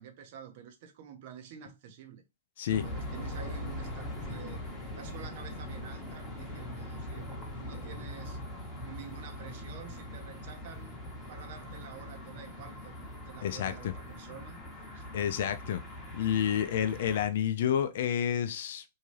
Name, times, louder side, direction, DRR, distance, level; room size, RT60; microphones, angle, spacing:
voice 1, 0.0-2.2 2.8-4.6 4.9-7.3 7.6-8.4 8.8-11.0 11.3-14.6 14.9-15.0, right 8 dB, 50° right, 0.7 m, -48 dB
voice 2, 2.6-2.9 13.4-13.9 15.1-15.8 16.1-18.8, left 9 dB, 65° left, 0.4 m, -29 dB
sound 1, 2.7-17.3, left 1 dB, 5° left, 0.9 m, -41 dB
2.7 x 2.3 x 3.1 m
hypercardioid pair, 145°, 0 cm